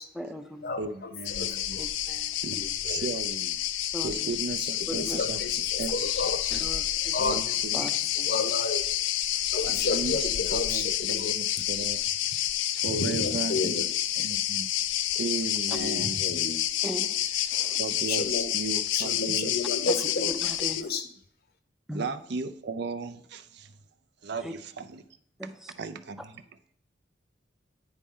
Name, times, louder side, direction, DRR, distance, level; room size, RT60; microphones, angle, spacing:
voice 1, 0.1-0.8 1.8-2.3 3.9-4.3 4.9-5.2 6.5-7.2 7.7-7.9 8.2-8.3 16.8-17.8 19.9-20.9 21.9-22.0 24.4-24.5 25.4-25.7, equal, ahead, 7 dB, 0.5 m, -38 dB
voice 2, 0.8-1.8 2.4-2.6 2.8-3.5 4.0-5.4 5.8-5.9 7.2-7.9 8.3-8.5 9.6-12.3 12.7-13.9 14.2-14.7 15.1-16.2 17.8-19.5 21.9-23.7 24.2-25.0 25.4-25.5 25.8-26.4, right 3 dB, 65° right, 10 dB, 0.5 m, -35 dB
sound 1, 1.3-20.8, left 12 dB, 90° left, 0.4 m, -29 dB
voice 3, 1.4-1.8 2.5-3.1 4.6-6.6 7.1-7.4 7.8-8.8 9.5-11.3 12.9-13.9 15.7-16.6 18.1-18.5 18.9-20.3 20.8-21.1, left 3 dB, 55° left, 9 dB, 0.7 m, -32 dB
9.6 x 4.2 x 3.6 m, 0.65 s
head